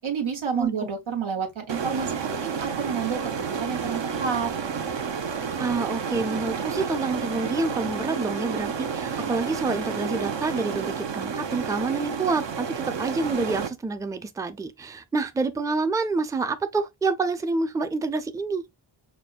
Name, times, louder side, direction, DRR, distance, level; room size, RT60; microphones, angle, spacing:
voice 1, 0.0-4.5, right 6 dB, 85° right, 1.1 m, -30 dB
sound 1, 1.7-13.7, right 6 dB, 65° right, 0.7 m, -30 dB
voice 2, 5.6-18.6, right 3 dB, 10° right, 0.4 m, -28 dB
5.1 x 2.1 x 2.4 m
wide cardioid pair, 50°, 46 cm